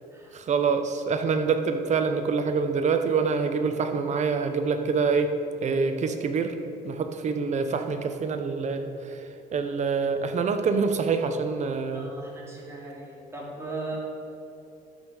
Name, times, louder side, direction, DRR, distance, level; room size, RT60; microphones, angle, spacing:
voice 1, 0.3-5.3 5.6-6.6 6.8-12.1, right 5 dB, 45° right, 7 dB, 0.9 m, -26 dB
voice 2, 11.9-14.0, right 3 dB, 15° right, -4 dB, 2.7 m, -38 dB
12.0 x 5.5 x 6.4 m, 2.8 s
cardioid pair, 110°, 17 cm